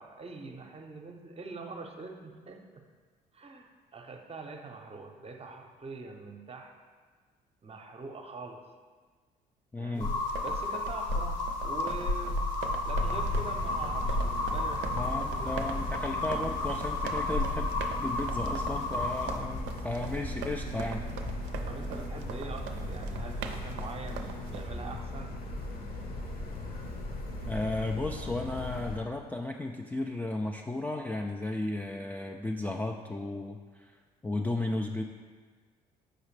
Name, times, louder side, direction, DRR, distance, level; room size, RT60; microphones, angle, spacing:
voice 1, 0.0-2.8 3.3-6.7 7.6-8.6 9.8-12.4 12.8-16.0 21.6-25.4, right 3 dB, 30° right, 4 dB, 0.8 m, -44 dB
voice 2, 9.7-10.1 14.9-17.7 18.0-21.0 27.5-33.9 34.2-35.0, left 2 dB, 10° left, 1 dB, 0.4 m, -34 dB
sound 1, 10.0-19.4, left 2 dB, 85° left, 0.6 m, -32 dB
sound 2, 10.1-24.7, right 7 dB, 60° right, 0.5 m, -43 dB
sound 3, 13.0-29.0, left 1 dB, 45° left, 1.0 m, -37 dB
6.5 x 4.8 x 3.2 m, 1.5 s
hypercardioid pair, 55°, 21 cm